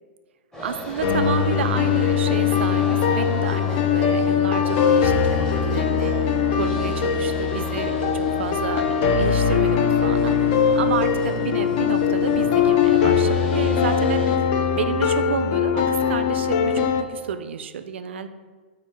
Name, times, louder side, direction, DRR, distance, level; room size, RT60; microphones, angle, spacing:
sound 1, 0.5-14.4, equal, 10° left, 0.8 m, -36 dB
voice 1, 0.6-18.3, right 7 dB, 80° right, 10 dB, 0.3 m, -30 dB
sound 2, 1.0-17.0, left 7 dB, 50° left, 0.4 m, -21 dB
6.0 x 2.1 x 4.3 m, 1.4 s
hypercardioid pair, 120°, 6 cm